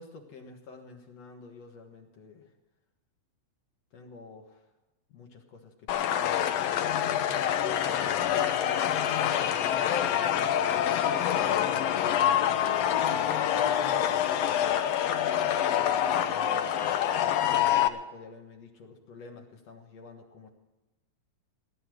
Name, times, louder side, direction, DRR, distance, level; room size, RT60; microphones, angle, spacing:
voice 1, 0.0-2.4 3.9-4.6 5.1-6.4 7.7-15.0 15.8-20.5, left 4 dB, 55° left, 2 dB, 2.3 m, -49 dB
sound 1, 5.9-17.9, left 10 dB, 80° left, 1.5 m, -26 dB
17.0 x 11.0 x 6.3 m, 1.0 s
omnidirectional pair, 3.9 m